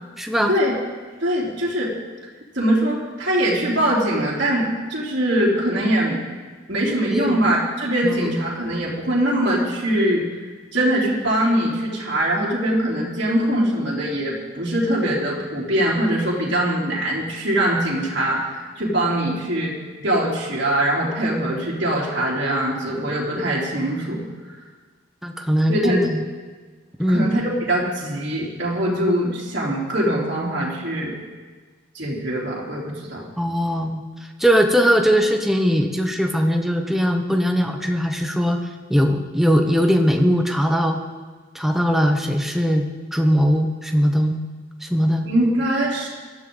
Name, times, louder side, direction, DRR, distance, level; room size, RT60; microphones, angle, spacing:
voice 1, 0.2-0.5 7.1-7.4 8.0-8.5 25.2-26.2 27.0-27.3 33.4-34.0 34.4-38.6 38.9-41.0 41.5-42.9 43.1-44.4 44.8-45.2, equal, ahead, 3 dB, 1.1 m, -20 dB
voice 2, 1.2-1.9 2.5-6.2 6.7-10.2 10.7-19.7 20.0-24.2 25.7-26.0 27.1-31.2 31.9-33.2 45.3-46.1, right 1 dB, 55° right, -6 dB, 3.7 m, -22 dB
19.5 x 13.5 x 4.0 m, 1.4 s
head